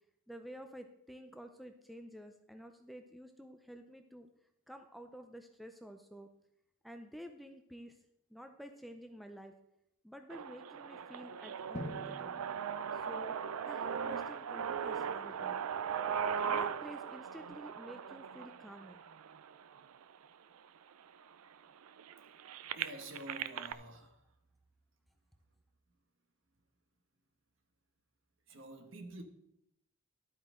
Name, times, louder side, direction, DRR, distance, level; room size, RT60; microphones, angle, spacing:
voice 1, 0.3-4.3 4.7-6.3 6.8-8.0 8.3-9.5 10.0-12.4 12.9-15.6 16.4-19.0, equal, ahead, 0.5 m, -50 dB
sound 1, 10.3-20.3 20.9-21.0 21.3-23.7, right 7 dB, 80° right, 0.4 m, -39 dB
Drum, 11.7-13.7, left 1 dB, 35° left, 0.9 m, -47 dB
voice 2, 22.7-24.3 28.5-29.2, right 1 dB, 60° right, 1.3 m, -48 dB
12.0 x 8.7 x 3.7 m
head